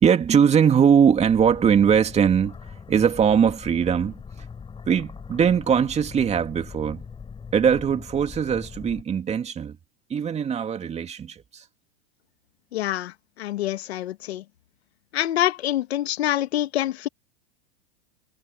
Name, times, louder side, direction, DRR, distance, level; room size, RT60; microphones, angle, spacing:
voice 1, 0.0-4.5 4.9-7.1 7.5-9.8 10.1-11.6, right 7 dB, 20° right, 2.4 m, -21 dB
sound 1, 1.2-9.0, left 6 dB, 15° left, 4.1 m, -41 dB
voice 2, 12.7-13.1 13.4-14.4 15.1-17.1, left 13 dB, 80° left, 1.9 m, -26 dB
supercardioid pair, 130°, 31 cm